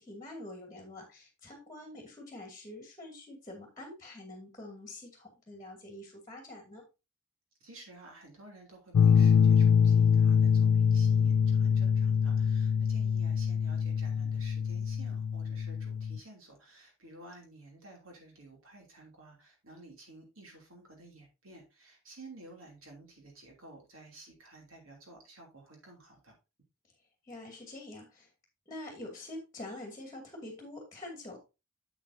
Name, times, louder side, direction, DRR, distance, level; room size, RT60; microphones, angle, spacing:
voice 1, 0.0-6.8 27.2-28.3 28.7-31.4, left 1 dB, 15° left, 2 dB, 2.3 m, -46 dB
voice 2, 7.6-26.3, right 2 dB, 70° right, 1 dB, 3.0 m, -53 dB
sound 1, 8.9-16.2, left 7 dB, 70° left, 0.3 m, -24 dB
8.1 x 7.9 x 2.7 m, 0.26 s
head